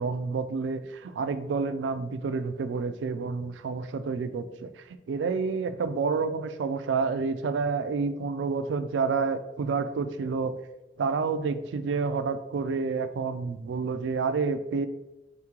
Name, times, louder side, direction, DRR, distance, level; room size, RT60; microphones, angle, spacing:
voice 1, 0.0-4.7 5.1-10.6 11.0-14.9, right 4 dB, 85° right, 11 dB, 0.3 m, -29 dB
3.7 x 3.6 x 3.0 m, 1.0 s
head